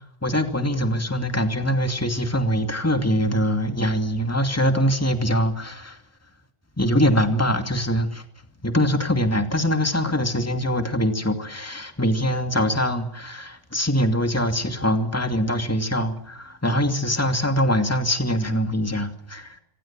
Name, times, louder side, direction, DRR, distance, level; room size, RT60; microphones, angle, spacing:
voice 1, 0.2-6.0 6.8-8.2 8.6-19.6, equal, 10° left, 2.6 m, -23 dB
27.5 x 25.5 x 7.6 m
omnidirectional pair, 1.4 m